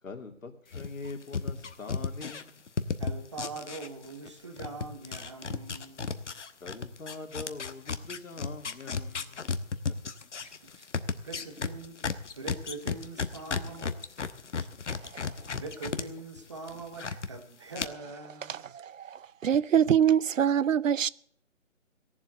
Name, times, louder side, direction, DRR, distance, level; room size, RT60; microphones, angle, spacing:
voice 1, 0.0-2.6 6.6-10.1, left 3 dB, 85° left, 2.8 m, -43 dB
sound 1, 0.7-4.3 4.6-16.0 16.4-17.3 17.7-17.8, left 5 dB, 65° left, 1.1 m, -34 dB
voice 2, 3.0-6.2 10.4-10.9 11.2-12.0 12.3-13.9 14.6-14.7 15.6-18.6, right 3 dB, 25° right, 1.2 m, -43 dB
voice 3, 18.5-21.1, right 9 dB, 80° right, 0.6 m, -25 dB
17.0 x 7.5 x 7.9 m
hypercardioid pair, 175°, 39 cm